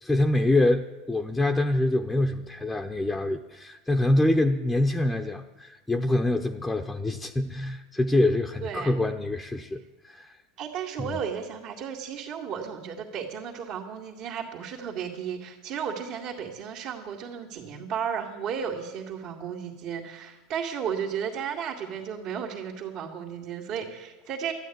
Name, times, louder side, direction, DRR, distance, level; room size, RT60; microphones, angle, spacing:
voice 1, 0.0-10.3 11.0-11.2, left 1 dB, 5° left, 4 dB, 0.7 m, -25 dB
voice 2, 8.6-8.9 10.6-24.5, right 7 dB, 55° right, -4 dB, 2.2 m, -34 dB
12.5 x 10.0 x 9.3 m, 1.2 s
supercardioid pair, 120°, 0 cm